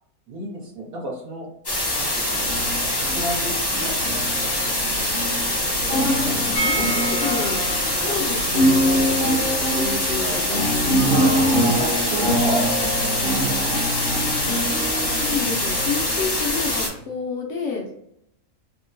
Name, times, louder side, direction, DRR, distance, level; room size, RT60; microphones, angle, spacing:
voice 1, 0.3-1.5 2.0-2.5 3.1-4.5 4.8-5.1 6.2-6.5 8.0-8.2 10.2-10.6 11.6-13.2, right 1 dB, 75° right, -2 dB, 1.4 m, -32 dB
sound 1, 1.6-16.9, left 1 dB, 25° left, 0.5 m, -24 dB
sound 2, 2.3-17.0, equal, 40° right, 0.9 m, -25 dB
voice 2, 6.2-7.6 8.0-11.2 14.7-14.9 15.1-17.9, left 5 dB, 65° left, 0 dB, 0.9 m, -30 dB
sound 3, 6.5-12.3 12.6-12.7 12.9-13.0, right 2 dB, 85° left, 1.1 m, -33 dB
3.6 x 2.1 x 2.5 m, 0.75 s
omnidirectional pair, 1.5 m